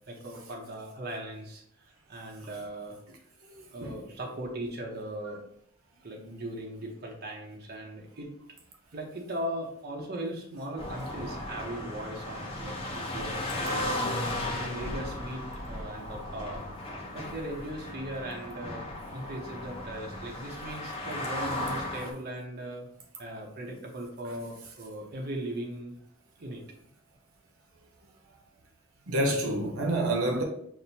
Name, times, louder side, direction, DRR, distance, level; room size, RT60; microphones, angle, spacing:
voice 1, 0.1-3.0 3.7-5.4 6.0-8.3 8.9-16.6 17.1-22.9 23.2-26.0 26.4-26.6 30.3-30.4, right 1 dB, 50° right, 0.8 m, -39 dB
sound 1, 10.8-22.1, left 1 dB, 25° left, 0.7 m, -36 dB
voice 2, 29.1-30.4, right 1 dB, 80° right, 0.8 m, -27 dB
6.2 x 2.1 x 2.7 m
head